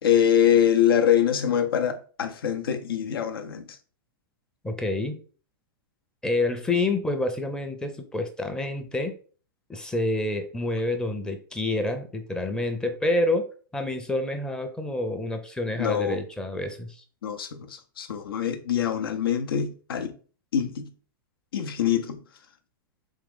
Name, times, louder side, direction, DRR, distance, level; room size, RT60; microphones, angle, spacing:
voice 1, 0.0-3.8 15.8-16.2 17.2-20.1 20.5-20.9 21.5-22.2, left 9 dB, 85° left, 0.6 m, -24 dB
voice 2, 4.6-5.2 6.2-9.1 9.7-13.5 13.7-17.0, left 2 dB, 5° left, 0.5 m, -28 dB
3.6 x 3.1 x 3.5 m
hypercardioid pair, 130°, 12 cm